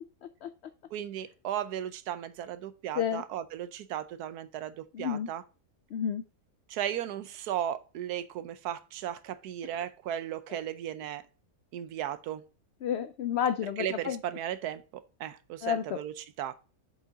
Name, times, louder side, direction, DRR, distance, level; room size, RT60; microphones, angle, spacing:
voice 1, 0.9-5.4 6.7-11.2 11.7-12.4 13.8-16.5, right 11 dB, 85° right, 1.2 m, -36 dB
voice 2, 4.9-5.3 5.9-6.2 12.8-14.2 15.6-15.8, left 9 dB, 75° left, 0.6 m, -30 dB
7.4 x 5.0 x 3.9 m
omnidirectional pair, 1.6 m